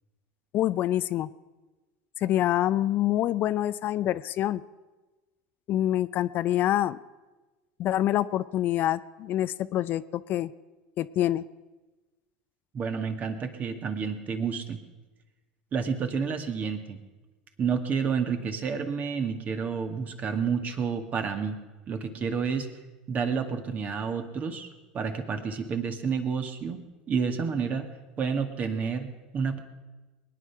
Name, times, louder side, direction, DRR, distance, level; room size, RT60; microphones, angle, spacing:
voice 1, 0.5-1.3 2.2-4.6 5.7-7.0 7.8-10.5 11.0-11.4, left 13 dB, 50° left, 15 dB, 0.5 m, -26 dB
voice 2, 12.7-14.8 15.7-17.0 17.6-21.6 21.9-22.7 23.1-24.7 24.9-27.9 28.2-29.6, right 6 dB, 35° right, 7 dB, 1.9 m, -30 dB
21.5 x 9.9 x 5.9 m, 1.2 s
hypercardioid pair, 85°, 4 cm